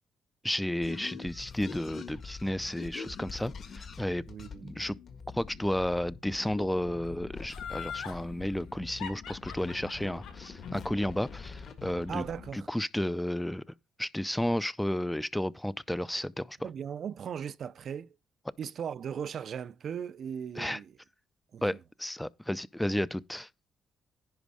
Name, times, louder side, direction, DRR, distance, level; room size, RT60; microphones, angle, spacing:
voice 1, 0.4-4.2 4.6-4.9 5.3-12.2 12.5-13.6 14.0-16.7 20.6-20.8 21.6-23.5, left 1 dB, 5° left, 0.4 m, -32 dB
sound 1, 0.8-12.5, left 5 dB, 50° left, 1.6 m, -45 dB
voice 2, 4.3-4.8 12.1-12.7 16.6-18.1 18.6-20.9 21.5-21.6, right 8 dB, 60° right, 0.5 m, -38 dB
Laughter, 7.5-8.2 9.0-12.1 12.5-12.6, left 8 dB, 85° left, 5.2 m, -41 dB
10.5 x 5.1 x 4.8 m
cardioid pair, 90°, 0 cm